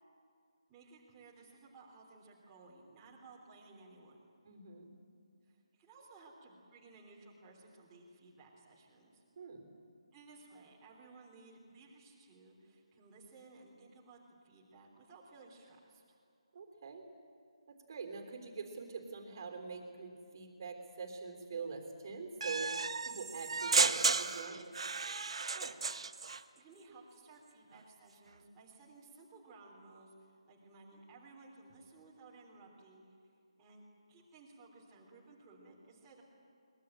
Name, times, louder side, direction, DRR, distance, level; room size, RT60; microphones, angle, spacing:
voice 1, 0.7-4.2 5.4-9.2 10.1-16.0 25.4-25.9 26.6-33.1 33.6-33.8 34.1-36.2, right 3 dB, 10° right, -4 dB, 3.4 m, -58 dB
voice 2, 4.4-4.9 9.4-9.6 16.5-17.0 17.7-22.7 23.0-24.7, right 4 dB, 35° right, 5 dB, 3.4 m, -44 dB
sound 1, 22.4-26.4, right 4 dB, 60° right, 1.0 m, -33 dB
23.0 x 21.5 x 8.9 m, 2.4 s
hypercardioid pair, 170°, 3 cm